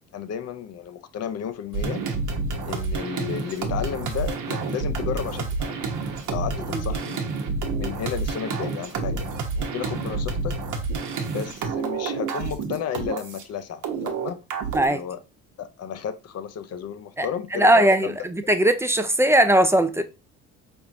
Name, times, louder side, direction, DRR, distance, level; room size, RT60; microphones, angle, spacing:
voice 1, 0.1-2.1 2.7-5.9 6.3-7.2 7.8-9.3 9.6-10.6 11.3-14.4 14.8-15.2 15.6-18.2, left 8 dB, 50° left, 0.6 m, -33 dB
sound 1, 1.7-13.4 13.8-14.9, right 4 dB, 65° right, 1.0 m, -29 dB
voice 2, 17.5-20.0, right 1 dB, 10° right, 0.5 m, -19 dB
4.6 x 3.5 x 2.6 m
supercardioid pair, 75°, 33 cm